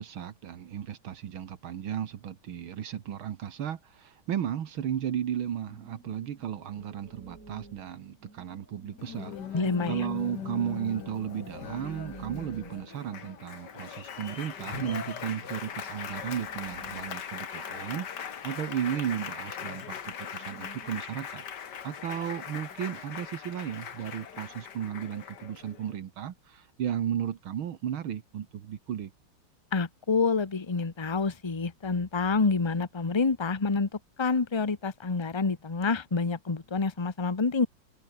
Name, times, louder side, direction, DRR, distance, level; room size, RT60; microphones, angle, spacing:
voice 1, 0.0-29.1, right 9 dB, 80° right, 2.2 m, -35 dB
sound 1, 5.2-14.2 14.4-14.5 14.9-19.0 19.4-19.5 20.3-21.0, right 2 dB, 40° right, 5.6 m, -51 dB
Applause, 9.0-26.0, left 8 dB, 55° left, 2.0 m, -40 dB
voice 2, 9.5-10.0 29.7-33.9 34.2-37.7, left 4 dB, 20° left, 0.9 m, -27 dB
omnidirectional pair, 2.2 m